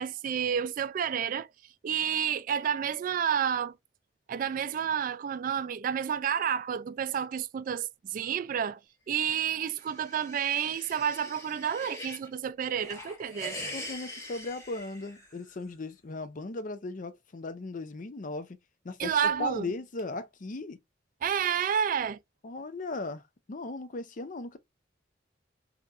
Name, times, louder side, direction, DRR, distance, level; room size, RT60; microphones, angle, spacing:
voice 1, 0.0-1.5 1.8-3.7 4.3-8.8 9.1-13.6 19.0-19.6 21.2-22.2, right 8 dB, 50° right, 0.3 m, -30 dB
sound 1, 9.6-12.3 12.7-15.5, left 1 dB, 15° left, 1.3 m, -43 dB
voice 2, 13.7-18.6 18.8-20.8 22.4-23.2 23.5-24.6, left 3 dB, 45° left, 0.6 m, -37 dB
4.1 x 2.9 x 2.4 m
head